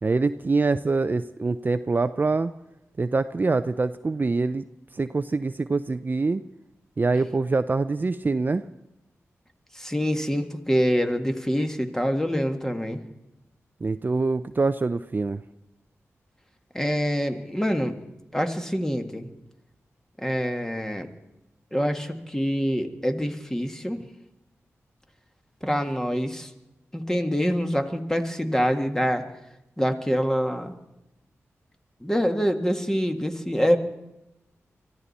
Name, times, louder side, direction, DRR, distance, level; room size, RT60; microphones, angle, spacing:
voice 1, 0.0-2.5 3.0-4.6 4.9-6.4 7.0-8.6 13.8-15.4, right 3 dB, 35° right, 12 dB, 0.5 m, -24 dB
voice 2, 9.7-13.0 16.7-18.0 18.3-19.3 20.2-21.1 21.7-24.0 25.6-26.5 26.9-29.2 29.8-30.7 32.0-33.8, equal, 10° left, 6 dB, 1.7 m, -25 dB
24.0 x 14.0 x 4.2 m, 0.92 s
cardioid pair, 60°, 5 cm